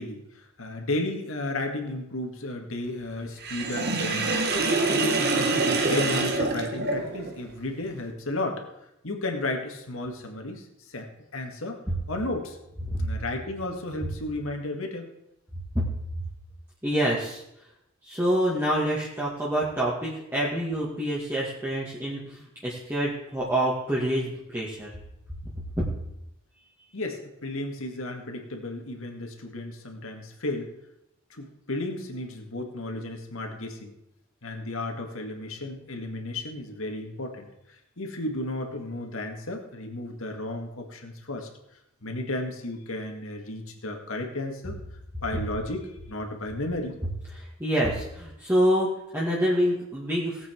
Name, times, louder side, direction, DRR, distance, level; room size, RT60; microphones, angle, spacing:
voice 1, 0.0-4.5 4.9-8.6 9.0-11.8 12.1-12.6 13.0-15.1 26.9-30.7 31.3-33.9 34.4-41.5 42.0-44.8 45.2-47.0, left 2 dB, 70° left, 3 dB, 2.1 m, -33 dB
Sink (filling or washing), 3.4-7.4, right 3 dB, 50° right, 1.7 m, -25 dB
voice 2, 16.8-17.4 18.0-24.9 25.8-25.9 47.3-50.5, equal, 10° right, -7 dB, 2.1 m, -26 dB
18.5 x 8.2 x 4.7 m, 0.84 s
head